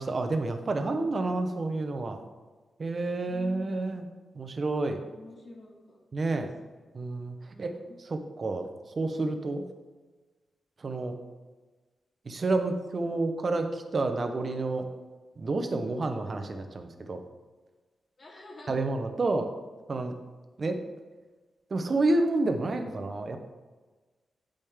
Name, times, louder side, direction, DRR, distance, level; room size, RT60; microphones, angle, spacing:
voice 1, 0.0-2.2 2.8-4.0 4.3-5.0 6.1-6.5 6.9-7.7 8.0-8.7 9.0-9.6 10.8-11.2 12.2-14.9 15.4-17.2 18.7-19.5 19.9-20.1 20.6-20.8 21.7-23.4, right 2 dB, 40° right, 6 dB, 0.9 m, -29 dB
voice 2, 3.2-3.9 5.1-6.4 7.5-8.0 18.2-18.8, left 2 dB, 45° left, -3 dB, 2.4 m, -48 dB
14.5 x 5.2 x 3.6 m, 1.3 s
wide cardioid pair, 140°, 0 cm